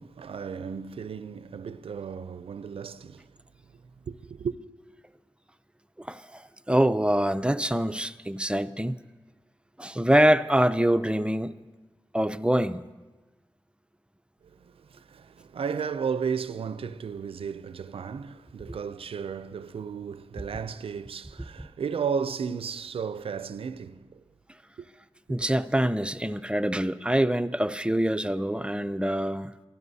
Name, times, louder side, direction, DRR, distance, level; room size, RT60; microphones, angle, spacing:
voice 1, 0.0-3.3 3.7-3.8 4.1-4.6 14.4-24.2 24.8-24.9, right 6 dB, 85° right, 0.4 m, -34 dB
voice 2, 6.0-6.4 6.7-9.0 9.8-11.5 12.1-12.8 25.3-29.5, right 1 dB, 10° right, 0.5 m, -25 dB
23.0 x 13.0 x 2.8 m
cardioid pair, 40°, 9 cm